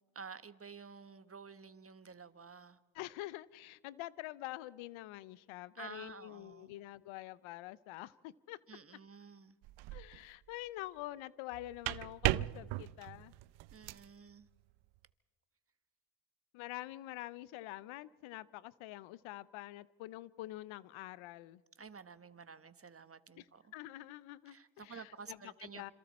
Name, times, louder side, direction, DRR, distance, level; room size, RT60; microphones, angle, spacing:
voice 1, 0.1-2.8 5.7-6.8 8.7-9.6 13.7-14.5 21.8-23.7 24.5-25.9, right 5 dB, 30° right, 12 dB, 1.3 m, -51 dB
voice 2, 2.9-8.6 9.9-13.3 16.5-21.6 23.4-23.5 23.7-25.9, left 16 dB, 90° left, 20 dB, 0.7 m, -46 dB
sound 1, 9.6-10.2 11.5-14.1, right 18 dB, 80° right, 0.6 m, -37 dB
27.0 x 26.5 x 4.3 m, 1.3 s
supercardioid pair, 60°, 47 cm